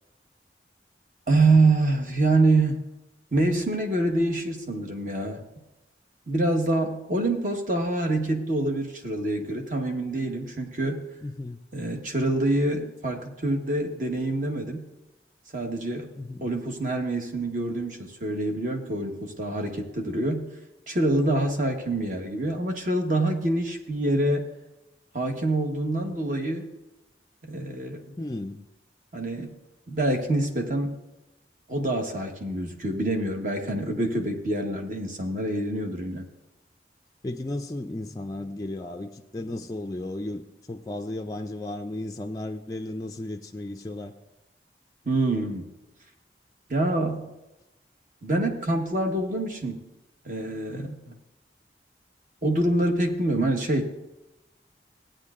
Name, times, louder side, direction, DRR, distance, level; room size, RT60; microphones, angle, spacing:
voice 1, 1.3-2.8 3.3-5.4 6.3-11.0 11.7-14.8 15.5-16.1 16.4-20.5 20.9-24.5 25.1-26.7 27.4-28.1 29.1-29.6 29.9-31.0 31.7-36.3 45.0-45.7 46.7-47.3 48.2-49.8 50.2-51.1 52.4-53.9, right 2 dB, 45° right, 3 dB, 1.1 m, -26 dB
voice 2, 11.2-11.6 16.2-16.5 28.2-28.6 37.2-44.1, left 1 dB, 20° left, 4 dB, 0.3 m, -34 dB
16.0 x 9.0 x 2.5 m, 0.98 s
head